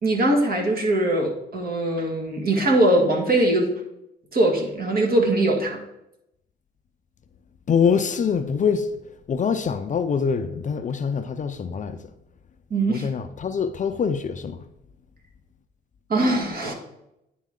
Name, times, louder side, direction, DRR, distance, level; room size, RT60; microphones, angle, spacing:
voice 1, 0.0-3.8 4.3-5.8 12.7-13.1 16.1-16.7, right 1 dB, 50° right, 1.7 m, -21 dB
voice 2, 7.7-8.9 9.3-12.0 12.9-14.6, left 6 dB, 40° left, 0.5 m, -24 dB
10.0 x 4.2 x 3.7 m
cardioid pair, 90°, 20 cm